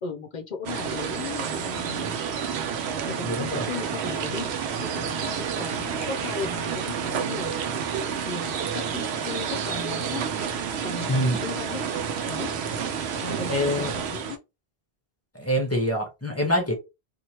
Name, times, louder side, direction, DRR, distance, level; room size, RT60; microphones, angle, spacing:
voice 1, 0.0-2.2 3.1-4.5 4.8-7.8 8.2-10.2 10.8-11.8 12.2-12.5 13.2-14.4, left 5 dB, 55° left, 0.6 m, -36 dB
sound 1, 0.7-14.4, right 7 dB, 90° right, 0.8 m, -30 dB
voice 2, 3.2-3.7 11.0-11.4 13.5-13.9 15.3-16.7, equal, 15° left, 0.8 m, -25 dB
2.9 x 2.5 x 2.8 m
omnidirectional pair, 1.1 m